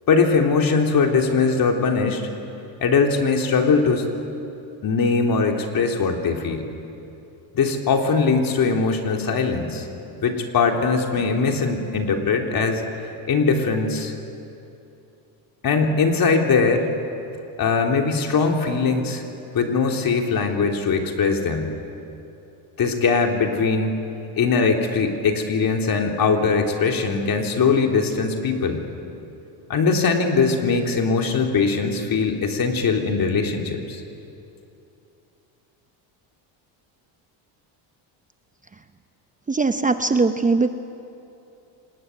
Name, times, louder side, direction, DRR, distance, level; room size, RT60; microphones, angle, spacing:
voice 1, 0.1-2.2 2.8-4.0 4.8-6.7 7.5-9.9 10.2-12.8 13.3-14.1 15.6-16.9 17.6-19.2 19.5-21.7 22.8-24.0 24.3-28.8 29.7-34.0, left 4 dB, 45° left, 2 dB, 3.5 m, -21 dB
voice 2, 39.5-40.7, right 3 dB, 15° right, 8 dB, 0.8 m, -20 dB
26.5 x 20.0 x 9.4 m, 2.8 s
cardioid pair, 110°, 47 cm